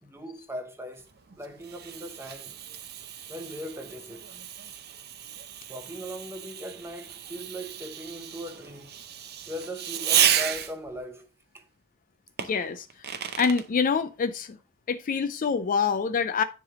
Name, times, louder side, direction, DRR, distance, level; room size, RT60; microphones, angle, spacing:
voice 1, 0.0-1.1 1.4-2.5 3.3-4.4 5.7-8.9 9.5-11.3 11.5-11.7, equal, 10° right, 0.9 m, -39 dB
Fireworks, 1.0-11.0 12.4-13.7, right 9 dB, 50° right, 0.6 m, -32 dB
voice 2, 12.4-12.9 13.4-14.6 14.9-16.4, left 5 dB, 40° left, 0.4 m, -26 dB
9.8 x 3.3 x 3.7 m
head